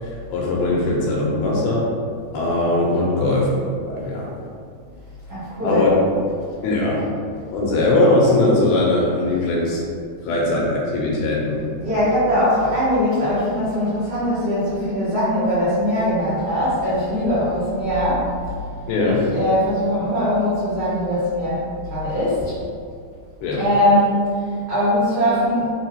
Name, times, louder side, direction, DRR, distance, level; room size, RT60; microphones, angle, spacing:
voice 1, 0.0-1.9 2.3-3.6 3.9-4.3 5.6-5.9 6.6-7.1 7.5-9.8 10.2-11.6 18.9-19.2 23.4-23.7, left 2 dB, 80° left, -3 dB, 2.5 m, -20 dB
voice 2, 5.3-5.8 11.8-18.3 19.0-21.6 21.9-22.5 23.5-24.2 24.7-25.7, equal, 80° right, -13 dB, 1.4 m, -21 dB
6.5 x 2.3 x 2.8 m, 2.2 s
omnidirectional pair, 4.7 m